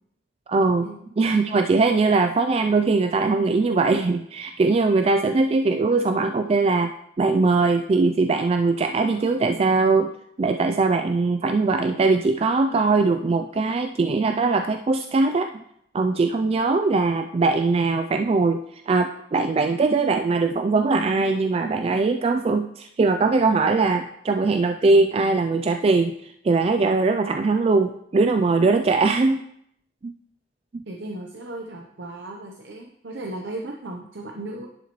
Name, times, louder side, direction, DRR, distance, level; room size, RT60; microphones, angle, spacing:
voice 1, 0.5-0.9 1.2-10.1 10.4-15.6 15.9-29.5 30.0-30.1 30.7-30.8, right 3 dB, 30° right, 6 dB, 0.3 m, -21 dB
voice 2, 30.9-34.7, right 2 dB, 70° right, 1 dB, 0.8 m, -36 dB
11.0 x 7.2 x 3.1 m, 0.74 s
head